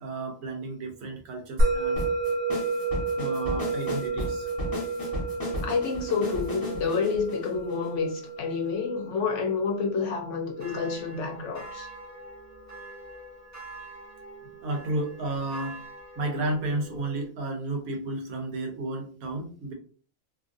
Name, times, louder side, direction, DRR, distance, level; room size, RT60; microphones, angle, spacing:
voice 1, 0.0-2.0 3.2-4.5 14.6-15.8 16.2-19.7, right 2 dB, 80° right, 1.2 m, -32 dB
Musical instrument, 1.6-12.2, right 2 dB, 60° right, 0.7 m, -31 dB
sound 1, 2.0-8.3, left 1 dB, 15° left, 1.0 m, -34 dB
voice 2, 5.6-11.9, left 5 dB, 65° left, 0.9 m, -29 dB
sound 2, 10.6-17.3, right 1 dB, 20° right, 0.5 m, -44 dB
3.0 x 2.5 x 2.5 m
omnidirectional pair, 1.5 m